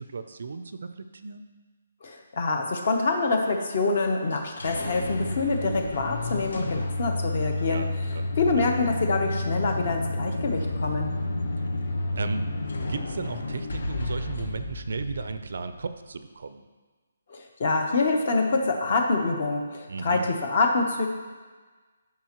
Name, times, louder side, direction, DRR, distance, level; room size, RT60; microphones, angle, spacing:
voice 1, 0.0-1.5 7.6-8.3 8.6-8.7 11.8-12.5 12.8-16.6 19.9-20.3, right 4 dB, 50° right, 10 dB, 0.5 m, -35 dB
voice 2, 2.0-7.9 8.4-11.1 17.3-21.1, left 3 dB, 35° left, 4 dB, 0.9 m, -26 dB
sound 1, 4.3-15.9, left 2 dB, 55° left, 1.0 m, -31 dB
13.5 x 5.8 x 3.0 m, 1.4 s
hypercardioid pair, 180°, 0 cm